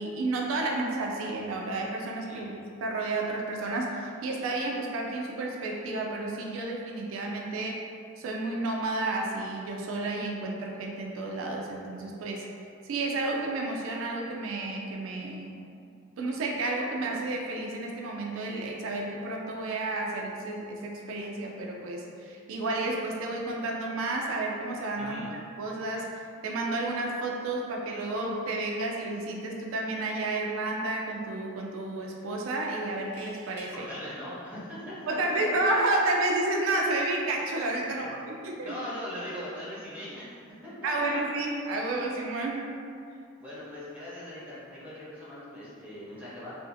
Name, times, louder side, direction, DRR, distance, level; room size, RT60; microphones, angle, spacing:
voice 1, 0.0-7.8 8.2-12.5 12.8-15.6 16.2-33.9 35.1-38.7 40.8-42.7, right 2 dB, 80° right, -1 dB, 0.3 m, -31 dB
voice 2, 25.0-25.3 33.7-35.1 37.9-38.2 38.6-40.3 40.6-41.2 43.4-46.5, left 1 dB, 5° right, -9 dB, 0.7 m, -40 dB
sound 1, 32.9-33.7 35.5-35.8, equal, 55° left, 0.7 m, -51 dB
2.5 x 2.4 x 2.6 m, 2.4 s
head